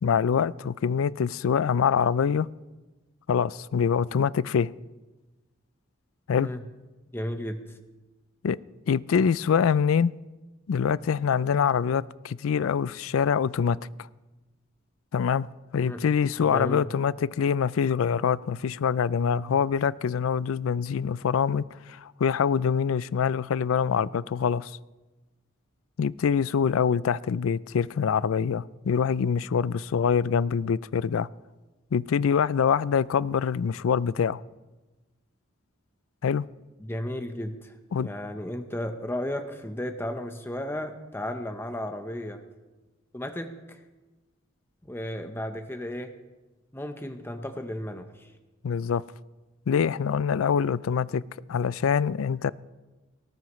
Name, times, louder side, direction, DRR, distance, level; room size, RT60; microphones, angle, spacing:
voice 1, 0.0-2.5 3.3-4.7 6.3-6.5 8.4-8.6 8.9-10.1 10.7-13.8 15.1-15.5 15.7-24.8 26.0-31.3 31.9-34.4 36.2-36.4 37.9-38.1 48.6-49.0 49.7-51.2 51.5-52.5, left 7 dB, 90° left, 19 dB, 0.4 m, -25 dB
voice 2, 7.1-7.6 15.8-16.0 16.4-16.9 36.8-42.4 43.1-43.8 44.8-46.1 46.7-48.3, left 1 dB, 10° left, 7 dB, 0.8 m, -34 dB
19.0 x 18.0 x 3.1 m, 1.1 s
head